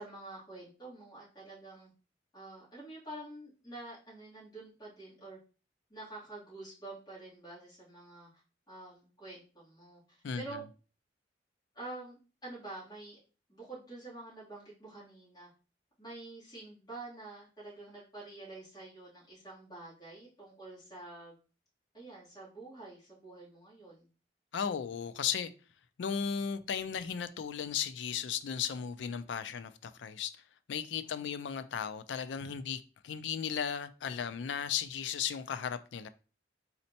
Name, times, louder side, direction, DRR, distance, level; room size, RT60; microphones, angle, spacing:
voice 1, 0.0-1.9 2.3-5.4 5.9-8.3 8.7-10.0 10.3-10.6 11.7-13.2 13.5-15.5 16.0-21.3 21.9-24.1 31.0-31.3, right 2 dB, 25° left, 2.6 m, -47 dB
voice 2, 10.2-10.6 24.5-25.5 26.0-30.3 30.7-36.1, left 7 dB, 80° left, 0.4 m, -35 dB
4.2 x 4.2 x 2.8 m
head